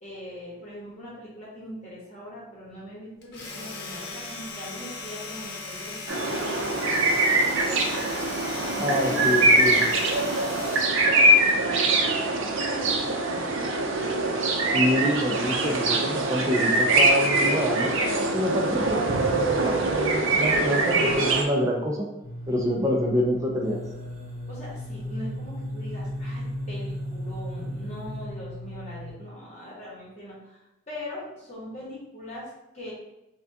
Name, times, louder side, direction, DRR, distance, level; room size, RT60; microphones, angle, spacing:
voice 1, 0.0-11.0 11.4-14.6 18.7-19.5 24.5-32.9, left 1 dB, 35° left, -6 dB, 1.1 m, -41 dB
Domestic sounds home sounds, 3.2-11.1, left 3 dB, 50° left, 0.8 m, -38 dB
sound 1, 6.1-21.4, right 2 dB, 70° right, 0.5 m, -23 dB
voice 2, 8.8-9.8 14.7-17.9 18.3-22.1 22.5-23.8, equal, 15° right, -2 dB, 0.4 m, -26 dB
sound 2, 22.2-29.1, equal, 35° right, 0.9 m, -35 dB
5.9 x 2.2 x 2.7 m, 0.92 s
head